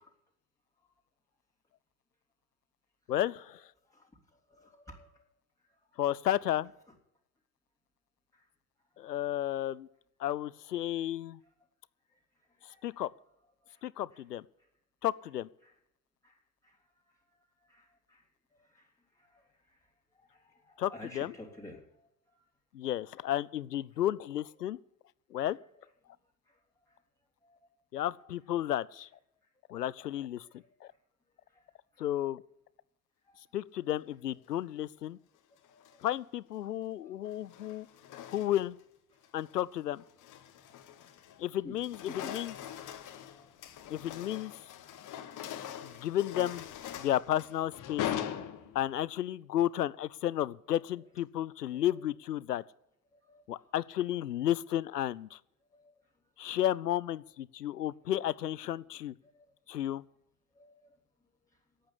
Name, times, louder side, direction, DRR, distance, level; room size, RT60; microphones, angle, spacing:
voice 1, 3.1-3.7 6.0-6.7 9.0-9.9 10.2-11.4 12.6-13.1 13.8-14.5 15.0-15.5 20.8-21.3 22.7-24.8 25.3-25.6 27.9-29.1 29.7-30.9 32.0-32.4 33.5-35.2 36.0-37.9 38.3-38.8 39.3-40.0 41.4-42.5 43.9-44.5 45.8-46.7 47.0-48.1 48.7-52.6 53.5-55.4 56.4-59.1 59.7-60.0, left 12 dB, 85° left, 21 dB, 0.6 m, -33 dB
voice 2, 4.5-5.2 12.8-12.9 13.7-13.8 15.6-15.7 16.2-16.3 17.7-18.2 18.7-18.8 20.2-21.8 27.4-27.6 28.2-28.3 33.3-33.4 35.7-35.9 37.0-37.1 41.6-41.8 42.1-42.3 43.3-43.5 45.9-46.0 51.7-51.8 53.3-53.4 55.7-55.9 59.3-59.4 60.6-60.8, left 2 dB, 5° left, -2 dB, 3.1 m, -50 dB
sound 1, 35.6-36.1 37.2-38.8 39.2-39.5 40.0-41.4 41.7-49.0, left 10 dB, 40° left, 1.8 m, -42 dB
11.0 x 8.7 x 10.0 m, 0.81 s
figure-of-eight pair, 75°, 46 cm